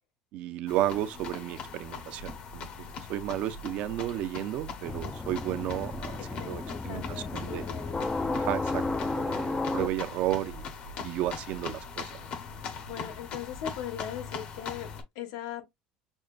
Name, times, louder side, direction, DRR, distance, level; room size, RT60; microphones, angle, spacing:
voice 1, 0.3-7.7 8.3-8.8 9.1-10.7 11.0-12.1, right 13 dB, 55° right, 0.5 m, -33 dB
sound 1, 0.7-15.0, left 5 dB, 45° left, 0.8 m, -41 dB
sound 2, 4.8-9.9, left 3 dB, 10° left, 0.3 m, -33 dB
voice 2, 6.2-8.1 12.9-15.6, left 9 dB, 85° left, 1.4 m, -40 dB
6.2 x 2.2 x 2.4 m
cardioid pair, 155°, 2 cm